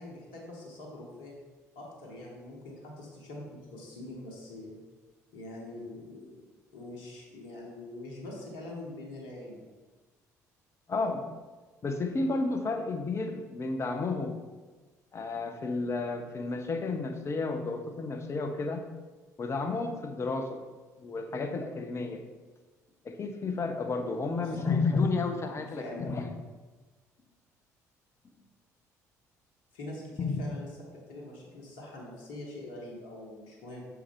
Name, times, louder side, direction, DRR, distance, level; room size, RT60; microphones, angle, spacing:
voice 1, 0.0-1.3 1.7-4.8 5.3-6.4 6.7-9.6 24.3-24.7 25.8-26.2 29.7-30.7 30.9-33.8, left 1 dB, 60° left, -2 dB, 1.2 m, -44 dB
voice 2, 10.9-11.3 11.8-14.4 15.1-18.8 19.4-20.6 21.0-22.2 23.0-26.3 30.2-30.5, left 3 dB, 30° left, 6 dB, 0.7 m, -31 dB
6.3 x 4.5 x 3.6 m, 1.3 s
figure-of-eight pair, 50°, 9 cm